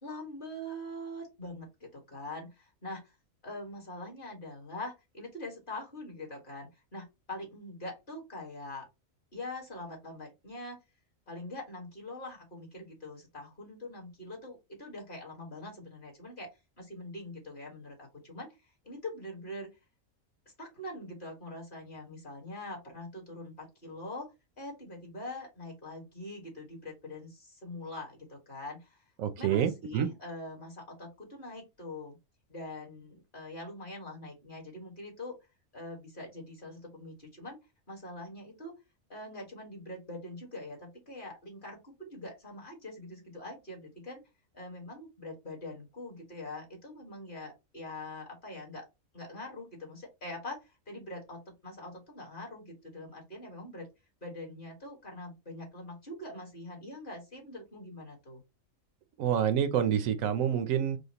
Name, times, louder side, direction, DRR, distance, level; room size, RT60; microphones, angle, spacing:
voice 1, 0.0-3.1 3.4-8.9 9.3-10.8 11.3-19.7 20.5-29.0 29.4-32.2 32.5-35.4 35.7-37.6 37.9-38.7 39.1-44.2 44.5-48.8 49.1-53.9 54.2-58.4, left 1 dB, 40° left, 1.8 m, -43 dB
voice 2, 29.2-30.1 59.2-61.0, right 9 dB, 75° right, 1.0 m, -27 dB
4.9 x 2.2 x 2.9 m
omnidirectional pair, 1.4 m